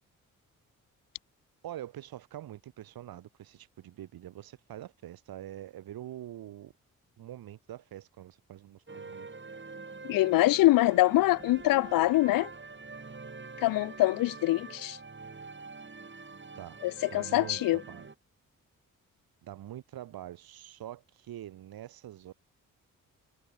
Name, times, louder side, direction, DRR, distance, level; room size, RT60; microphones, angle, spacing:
voice 1, 1.6-6.7 7.2-9.3 16.5-16.8 17.1-18.1 19.4-22.3, right 12 dB, 80° right, 6.8 m, -45 dB
sound 1, 8.9-18.1, right 4 dB, 30° right, 2.9 m, -45 dB
voice 2, 10.0-12.5 13.6-15.0 16.8-17.8, left 17 dB, 70° left, 0.5 m, -24 dB
supercardioid pair, 45°, 35 cm